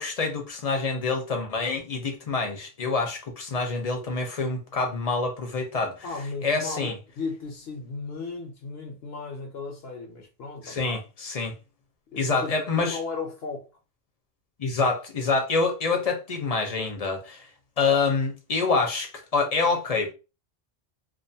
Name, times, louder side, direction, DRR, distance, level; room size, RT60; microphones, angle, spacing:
voice 1, 0.0-6.1 6.4-6.9 10.6-11.5 12.2-13.0 14.6-17.5 17.8-20.1, left 4 dB, 45° left, 0.6 m, -26 dB
voice 2, 6.0-11.0 12.1-13.7, left 4 dB, 75° left, 0.9 m, -35 dB
2.5 x 2.3 x 2.6 m
omnidirectional pair, 1.0 m